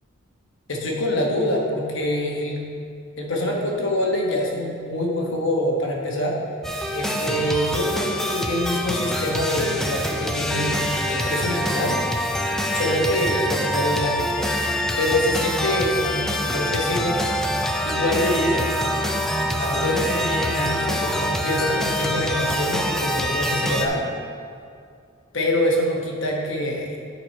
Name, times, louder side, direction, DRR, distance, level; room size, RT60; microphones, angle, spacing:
voice 1, 0.7-2.6 3.2-6.4 6.9-12.0 12.7-14.7 15.0-17.2 17.8-18.7 19.5-24.0 25.3-26.9, left 1 dB, 65° left, -1 dB, 1.2 m, -25 dB
sound 1, 6.6-23.9, equal, ahead, 0.4 m, -25 dB
8.8 x 4.3 x 4.4 m, 2.4 s
head